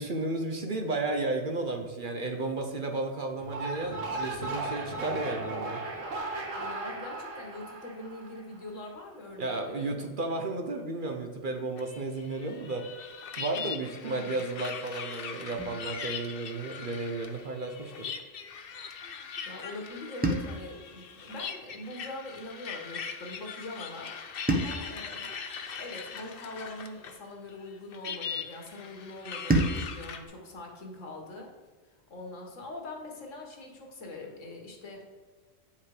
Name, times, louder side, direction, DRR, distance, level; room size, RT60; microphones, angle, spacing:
voice 1, 0.0-5.8 9.4-12.8 13.4-18.1, right 2 dB, 45° right, 4 dB, 0.9 m, -33 dB
sound 1, 3.4-8.7, right 2 dB, 80° right, 1.6 m, -36 dB
voice 2, 6.5-9.9 14.0-14.5 19.5-25.3 25.7-31.5 32.1-35.1, left 2 dB, 80° left, 1 dB, 1.8 m, -43 dB
sound 2, 11.8-27.2 27.5-30.2, left 6 dB, 55° left, 0.8 m, -40 dB
sound 3, 20.2-22.6 24.5-27.0 29.5-32.0, right 1 dB, 10° right, 0.8 m, -35 dB
8.9 x 5.7 x 4.8 m, 1.4 s
omnidirectional pair, 1.3 m